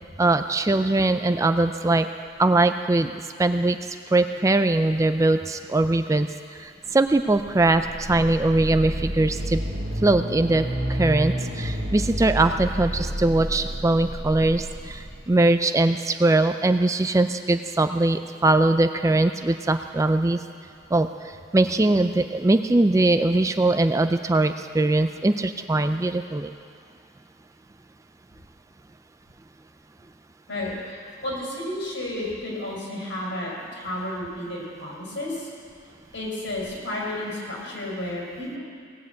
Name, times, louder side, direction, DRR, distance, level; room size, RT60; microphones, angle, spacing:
voice 1, 0.2-2.1 2.4-3.8 4.1-6.3 6.6-9.6 10.0-20.4 20.9-21.1 21.5-26.5, right 2 dB, 15° right, 9 dB, 0.3 m, -21 dB
sound 1, 7.4-15.2, equal, 45° right, 1.3 m, -30 dB
voice 2, 30.5-35.5 36.1-38.6, left 1 dB, 75° left, -4 dB, 5.0 m, -32 dB
18.0 x 7.5 x 8.1 m, 2.2 s
head